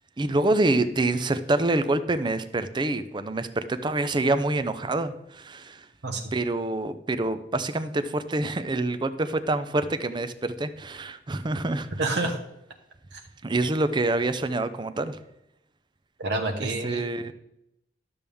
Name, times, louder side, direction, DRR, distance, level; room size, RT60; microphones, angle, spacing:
voice 1, 0.2-5.9 6.3-12.3 13.4-15.2 16.6-17.3, right 2 dB, 25° right, 11 dB, 0.5 m, -26 dB
voice 2, 12.0-12.4 16.2-17.0, right 2 dB, 70° right, 3 dB, 1.0 m, -27 dB
12.5 x 6.9 x 3.5 m, 0.84 s
head